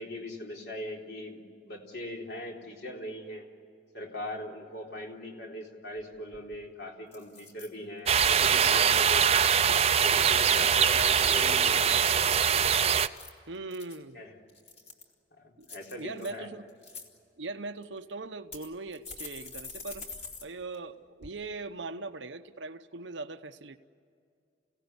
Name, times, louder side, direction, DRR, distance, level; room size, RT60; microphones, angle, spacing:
voice 1, 0.0-3.5 3.9-9.6 10.0-12.2 14.1-14.3 15.4-16.5, left 1 dB, 60° left, 0 dB, 3.9 m, -40 dB
sound 1, 6.0-6.1 6.3-6.7 7.1-7.7 8.2-8.5 13.0-14.0 14.5-15.1 15.6-16.3 16.7-17.1 17.8-17.9 18.5-20.4 20.7-20.8 21.2-21.3, left 4 dB, 35° left, 2.8 m, -45 dB
sound 2, 8.1-13.1, right 7 dB, 35° right, 0.6 m, -23 dB
voice 2, 13.5-14.2 15.6-15.7 16.0-16.6 17.4-20.1 20.4-23.8, right 3 dB, 85° right, 9 dB, 0.9 m, -40 dB
29.0 x 17.5 x 9.7 m, 2.3 s
head